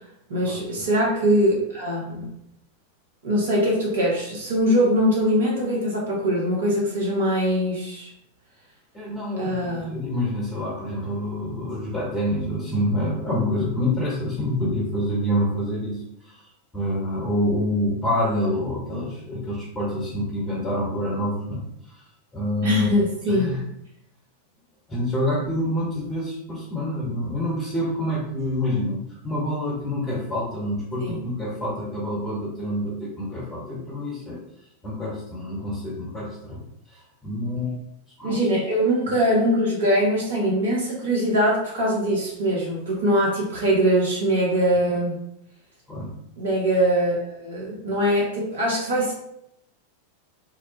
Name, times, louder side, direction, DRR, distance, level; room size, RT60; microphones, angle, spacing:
voice 1, 0.3-2.3 3.2-8.1 9.4-10.0 22.6-23.5 31.0-31.2 38.2-45.2 46.4-49.1, equal, 60° right, -3 dB, 0.8 m, -22 dB
voice 2, 8.9-16.0 16.3-16.4 16.7-22.0 22.3-22.9 23.3-23.6 24.9-34.4 34.8-36.6 36.9-37.8 38.2-38.4 45.9-46.1, left 1 dB, 10° left, -7 dB, 1.0 m, -27 dB
2.5 x 2.1 x 2.9 m, 0.78 s
figure-of-eight pair, 90°, 0 cm